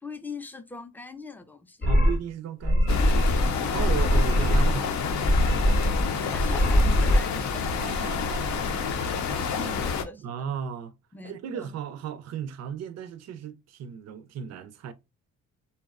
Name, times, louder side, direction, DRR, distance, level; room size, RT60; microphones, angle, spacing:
voice 1, 0.0-1.9 6.3-7.7 9.6-10.3 11.1-11.7, left 3 dB, 5° left, 0.4 m, -41 dB
sound 1, 1.8-2.2 2.6-3.5 3.7-4.8 5.1-6.1 6.3-7.2, equal, 30° left, 0.7 m, -22 dB
voice 2, 1.9-3.3 3.7-5.0 7.8-9.8 10.2-11.0 11.2-14.9, right 8 dB, 60° right, 0.4 m, -36 dB
sound 2, 2.9-10.0, left 5 dB, 70° left, 0.5 m, -29 dB
2.7 x 2.1 x 2.3 m
cardioid pair, 90°, 30 cm